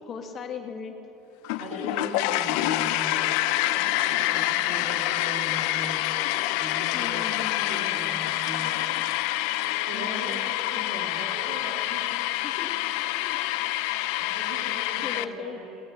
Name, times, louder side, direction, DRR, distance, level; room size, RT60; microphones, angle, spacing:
voice 1, 0.0-0.9 4.3-4.5 6.9-8.4 9.9-11.2 12.4-12.8 13.3-13.4 14.7-15.6, left 6 dB, 30° left, 4 dB, 1.2 m, -39 dB
sound 1, 1.4-15.2, left 16 dB, 65° left, 0.4 m, -27 dB
voice 2, 1.6-6.1 6.5-7.3 7.6-9.1 9.6-12.2 14.2-15.8, right 2 dB, 75° right, -2 dB, 1.9 m, -40 dB
19.0 x 6.6 x 6.8 m, 2.8 s
cardioid pair, 165°, 0 cm